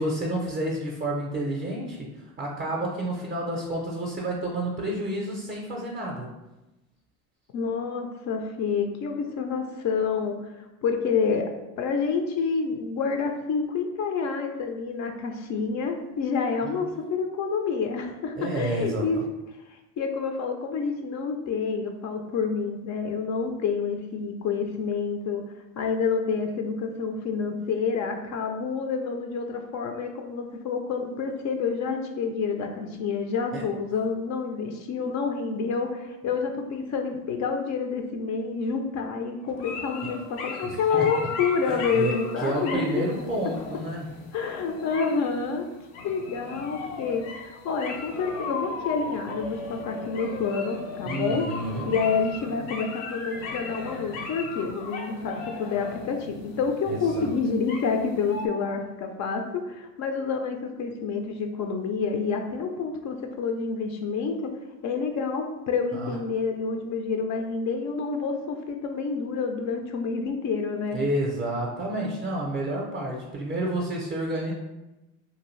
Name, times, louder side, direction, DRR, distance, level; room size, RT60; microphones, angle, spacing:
voice 1, 0.0-6.3 16.6-16.8 18.4-19.2 33.5-33.6 40.6-41.1 41.7-44.0 51.0-51.9 56.9-57.3 65.9-66.2 70.9-74.5, right 1 dB, 25° right, -2 dB, 0.5 m, -30 dB
voice 2, 7.5-19.2 20.0-25.4 25.8-40.2 40.4-42.8 44.3-45.7 46.0-51.4 51.9-64.5 64.8-71.0, left 5 dB, 45° left, 4 dB, 0.5 m, -28 dB
sound 1, 39.5-58.5, left 4 dB, 85° left, 0.6 m, -37 dB
2.6 x 2.3 x 3.1 m, 1.0 s
supercardioid pair, 90°, 40 cm